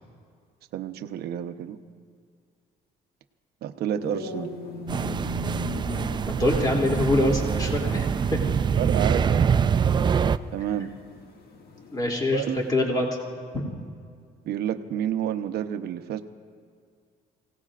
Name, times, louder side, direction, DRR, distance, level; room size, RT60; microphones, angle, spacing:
voice 1, 0.7-1.8 3.6-4.5 8.8-9.6 10.5-10.9 12.3-12.6 14.4-16.2, right 10 dB, 70° right, 8 dB, 0.9 m, -29 dB
sound 1, 4.0-12.7, left 2 dB, 65° left, 2.0 m, -40 dB
sound 2, 4.9-10.4, right 7 dB, 25° right, 0.4 m, -24 dB
voice 2, 6.3-8.0 8.3-8.5 11.9-12.4 12.7-13.1 13.5-13.6, left 2 dB, 25° left, -1 dB, 3.0 m, -24 dB
28.5 x 18.0 x 2.5 m, 2.2 s
cardioid pair, 110°, 17 cm